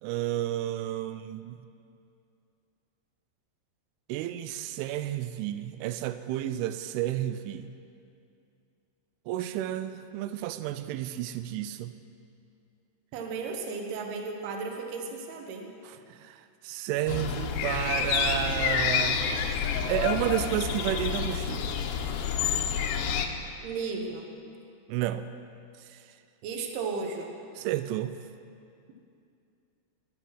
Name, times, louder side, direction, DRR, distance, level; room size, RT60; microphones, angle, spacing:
voice 1, 0.0-1.6 4.1-7.7 9.3-11.9 15.8-19.3 19.9-21.7 24.9-25.3 25.9-26.0 27.6-28.2, right 13 dB, 90° right, 11 dB, 3.0 m, -31 dB
voice 2, 13.1-15.7 23.6-24.3 26.4-27.3, right 4 dB, 70° right, 2 dB, 3.0 m, -34 dB
sound 1, 17.1-23.3, left 7 dB, 75° left, 2.7 m, -28 dB
20.0 x 9.0 x 6.1 m, 2.5 s
omnidirectional pair, 5.4 m